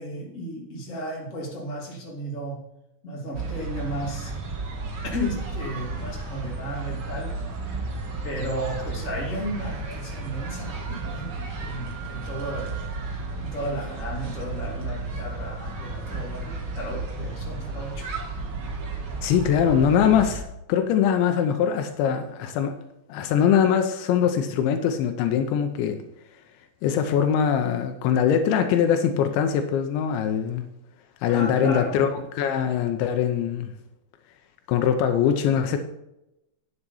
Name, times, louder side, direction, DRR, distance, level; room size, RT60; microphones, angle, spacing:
voice 1, 0.0-2.6 3.0-4.3 5.0-7.3 8.2-12.7 13.4-18.1 31.3-32.0, equal, 20° left, -2 dB, 2.3 m, -34 dB
sound 1, 3.3-20.4, right 3 dB, 65° right, 1.2 m, -33 dB
voice 2, 19.2-22.7 23.1-26.0 26.8-30.6 31.2-33.7 34.7-35.8, left 8 dB, 85° left, 6 dB, 3.2 m, -22 dB
9.9 x 7.9 x 5.5 m, 0.86 s
omnidirectional pair, 5.1 m